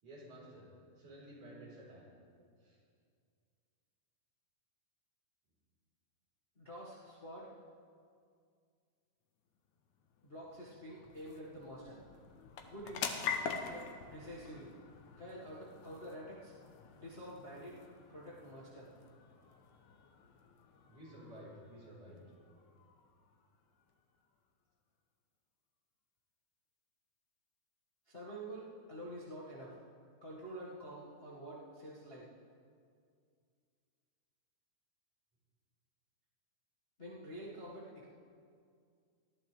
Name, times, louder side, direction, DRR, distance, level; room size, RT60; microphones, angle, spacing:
voice 1, 0.0-0.7 1.0-2.1 2.6-2.8 20.9-22.2, right 1 dB, 70° right, -6 dB, 5.9 m, -53 dB
voice 2, 6.5-7.5 10.2-12.0 12.7-13.2 13.7-14.7 15.2-16.5 16.9-17.8 18.1-18.9 28.1-29.7 30.2-32.3 37.0-38.1, right 1 dB, 25° left, -7 dB, 1.4 m, -48 dB
sound 1, 9.6-24.4, left 6 dB, 75° left, 2.3 m, -47 dB
19.5 x 14.0 x 3.4 m, 2.2 s
omnidirectional pair, 3.6 m